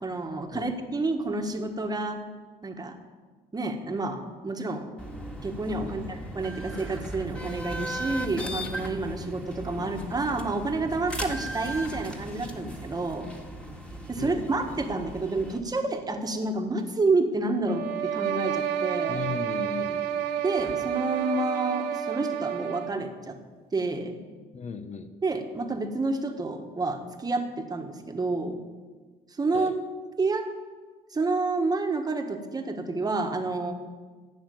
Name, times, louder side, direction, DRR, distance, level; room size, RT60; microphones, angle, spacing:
voice 1, 0.0-2.2 2.6-2.9 3.5-4.9 5.4-13.3 14.1-19.2 20.4-23.3 23.7-24.2 25.2-28.6 29.4-29.7 30.2-30.4 31.1-33.7, right 3 dB, 25° right, 4 dB, 1.5 m, -29 dB
sound 1, 5.0-15.6, right 1 dB, 5° left, 1.9 m, -37 dB
voice 2, 14.2-14.8 19.1-20.3 24.5-25.1 29.5-29.7, left 6 dB, 45° left, 9 dB, 1.0 m, -37 dB
sound 2, 17.6-23.0, right 9 dB, 80° right, 1.3 m, -30 dB
14.5 x 6.2 x 9.4 m, 1.4 s
cardioid pair, 110°, 17 cm